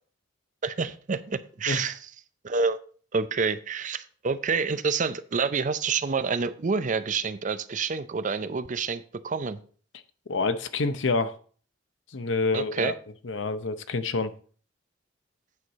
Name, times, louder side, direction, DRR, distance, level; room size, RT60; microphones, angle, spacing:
voice 1, 0.6-2.0 2.4-2.8 3.1-9.6 12.5-12.9, right 5 dB, 45° right, 13 dB, 0.5 m, -28 dB
voice 2, 10.3-11.4 12.1-12.9 13.2-14.3, left 3 dB, 90° left, 11 dB, 0.7 m, -27 dB
8.8 x 6.4 x 4.1 m, 0.44 s
head